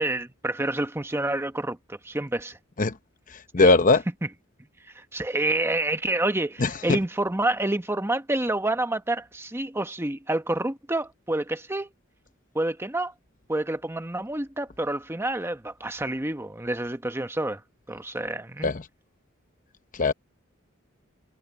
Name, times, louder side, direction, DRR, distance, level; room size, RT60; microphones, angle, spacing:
voice 1, 0.0-2.6 3.6-3.7 4.9-11.9 12.5-13.1 13.5-17.6 17.9-18.7, right 2 dB, 10° right, 1.0 m, -28 dB
voice 2, 3.5-4.0 6.6-7.0 18.6-18.8 19.9-20.1, left 3 dB, 40° left, 0.9 m, -20 dB
head